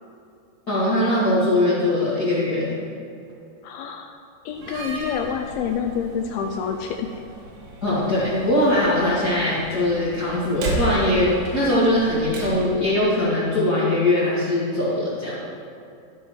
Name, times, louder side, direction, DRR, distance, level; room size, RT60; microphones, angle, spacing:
voice 1, 0.7-2.7 7.8-15.4, left 1 dB, 55° left, -9 dB, 1.0 m, -21 dB
voice 2, 3.6-4.1 4.5-7.2, left 7 dB, 80° left, 4 dB, 2.3 m, -28 dB
Slam, 4.5-12.9, right 2 dB, 75° right, 3.4 m, -34 dB
14.5 x 5.5 x 4.7 m, 2.6 s
omnidirectional pair, 4.7 m